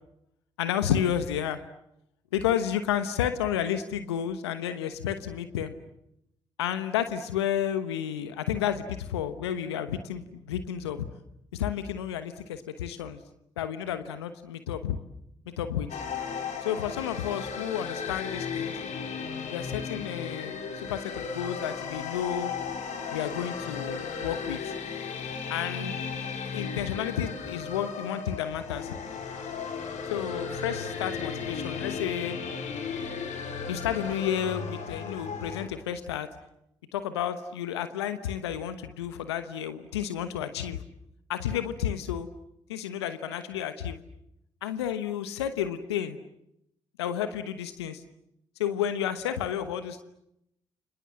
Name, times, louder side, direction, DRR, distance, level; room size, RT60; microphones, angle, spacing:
voice 1, 0.6-1.6 2.3-5.7 6.6-11.0 11.5-13.2 13.6-15.0 15.6-15.9 16.6-18.7 19.5-22.5 23.1-24.7 25.5-26.0 26.4-28.9 30.1-32.4 33.7-36.3 36.9-40.8 41.3-42.3 42.7-44.0 44.6-46.2 47.0-48.0 48.6-50.0, left 9 dB, 90° left, 11 dB, 1.1 m, -31 dB
sound 1, 15.9-35.7, left 6 dB, 65° left, 4.1 m, -35 dB
30.0 x 25.5 x 7.7 m, 0.81 s
hypercardioid pair, 40°, 13 cm